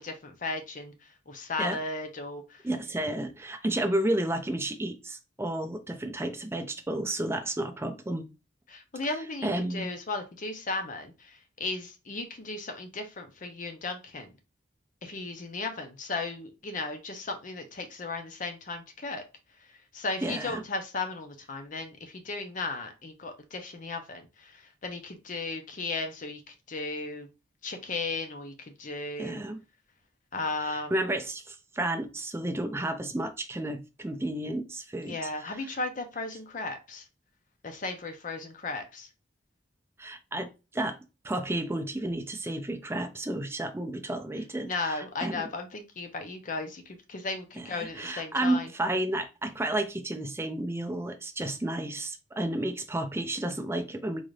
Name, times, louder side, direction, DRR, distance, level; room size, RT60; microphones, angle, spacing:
voice 1, 0.0-2.7 8.7-14.3 15.0-19.2 19.6-27.3 27.6-29.4 30.3-31.0 35.0-37.1 37.6-39.1 44.6-48.7, left 3 dB, 45° left, 0.6 m, -36 dB
voice 2, 2.6-8.3 9.4-9.9 20.2-20.6 29.2-29.6 30.6-35.3 35.6-35.7 40.0-41.0 41.2-45.5 47.6-54.2, right 1 dB, 15° right, 0.4 m, -32 dB
3.8 x 2.5 x 3.2 m
head